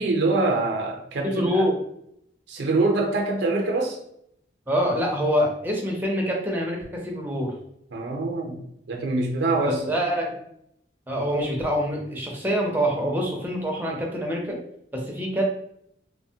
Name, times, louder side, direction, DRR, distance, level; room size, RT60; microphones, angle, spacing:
voice 1, 0.0-1.7 2.5-4.0 7.9-8.6 8.9-9.9, right 2 dB, 65° right, 1 dB, 0.5 m, -24 dB
voice 2, 1.2-1.7 4.7-7.5 9.6-10.3 11.1-14.6 14.9-15.4, equal, 10° right, -1 dB, 0.5 m, -25 dB
3.0 x 2.1 x 2.7 m, 0.73 s
head